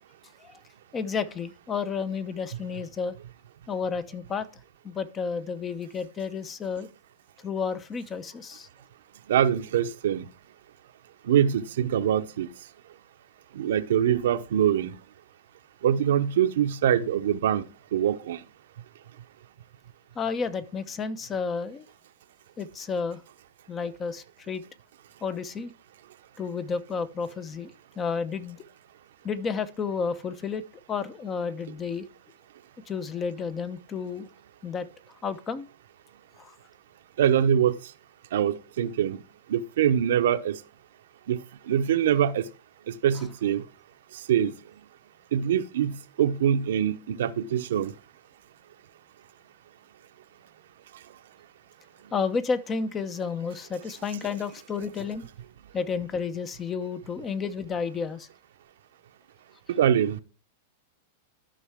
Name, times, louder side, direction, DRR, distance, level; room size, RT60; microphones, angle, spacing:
voice 1, 0.9-3.2 3.7-4.5 4.8-6.9 7.4-8.7 20.1-21.9 22.6-23.2 23.7-24.6 25.2-25.7 26.4-27.7 28.0-28.6 29.2-30.6 30.9-32.1 32.9-34.3 34.6-34.9 35.2-35.7 36.4-36.5 52.1-55.2 55.7-58.3, left 5 dB, 25° left, 0.8 m, -31 dB
voice 2, 9.3-10.2 11.2-12.5 13.5-15.0 15.8-17.6 17.9-18.4 37.2-37.7 38.3-39.2 39.5-40.6 41.3-42.5 42.9-43.6 44.3-44.6 45.3-47.9 59.7-60.2, right 9 dB, 75° right, 0.7 m, -24 dB
13.0 x 5.5 x 3.6 m
hypercardioid pair, 120°, 0 cm